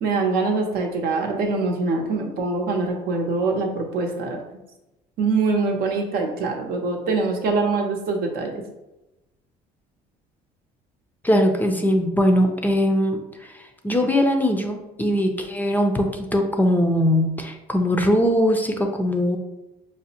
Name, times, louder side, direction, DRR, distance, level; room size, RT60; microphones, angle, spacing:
voice 1, 0.0-4.4 5.2-8.6, right 3 dB, 65° right, 2 dB, 0.8 m, -24 dB
voice 2, 11.2-19.4, equal, 10° left, 4 dB, 0.4 m, -21 dB
5.0 x 2.0 x 2.8 m, 0.97 s
cardioid pair, 100°, 17 cm